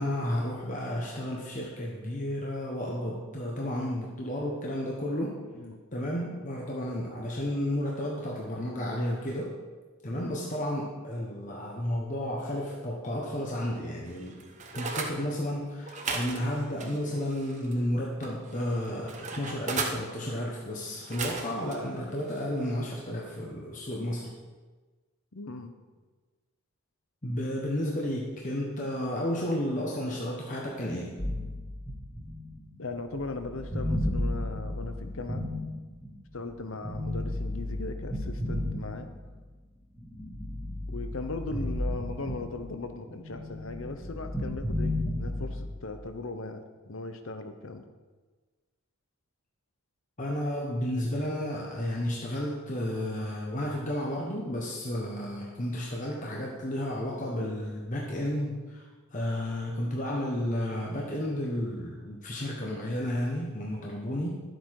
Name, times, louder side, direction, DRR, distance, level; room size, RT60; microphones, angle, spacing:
voice 1, 0.0-5.4 5.9-9.5 10.0-14.4 14.7-24.3 27.2-31.1 50.2-64.4, left 1 dB, 35° left, -3 dB, 1.3 m, -32 dB
sound 1, 14.1-15.1 15.8-17.8 18.2-20.0 20.9-21.8 22.3-22.5, right 4 dB, 35° right, 1.0 m, -36 dB
voice 2, 25.3-25.7 32.8-35.5 36.3-39.1 40.9-47.8, left 3 dB, 60° left, 8 dB, 0.9 m, -38 dB
sound 2, 31.2-36.3 36.8-39.5 40.0-42.8 43.1-45.8, left 1 dB, 5° left, 1.9 m, -33 dB
12.0 x 8.1 x 4.9 m, 1.3 s
head